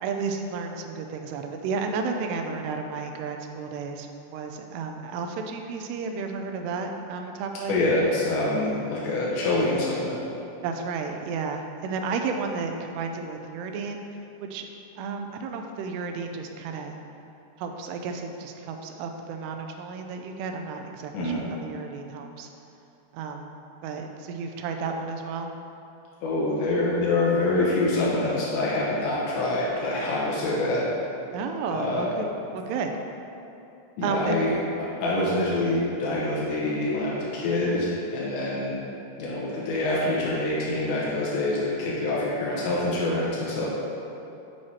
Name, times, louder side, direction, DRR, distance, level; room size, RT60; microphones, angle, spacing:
voice 1, 0.0-7.8 10.6-14.0 14.4-14.7 15.0-17.0 17.6-22.5 23.1-23.5 23.8-25.5 31.3-32.9 34.0-34.4, right 5 dB, 80° right, 4 dB, 2.6 m, -32 dB
voice 2, 7.7-10.2 21.1-21.4 26.2-30.9 31.7-32.1 34.0-34.5 35.0-38.8 39.2-43.7, left 2 dB, 85° left, -6 dB, 3.3 m, -25 dB
8.8 x 4.7 x 4.2 m, 2.8 s
omnidirectional pair, 4.9 m